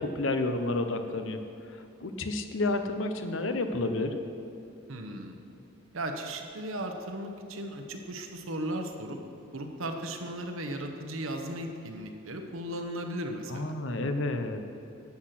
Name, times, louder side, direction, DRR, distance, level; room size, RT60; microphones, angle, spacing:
voice 1, 0.0-1.4 2.0-4.1 13.5-14.6, left 2 dB, 60° left, 7 dB, 0.9 m, -30 dB
voice 2, 4.9-5.4 5.9-9.2 9.5-13.8, right 1 dB, 70° right, 4 dB, 1.2 m, -36 dB
11.5 x 8.3 x 6.1 m, 2.9 s
head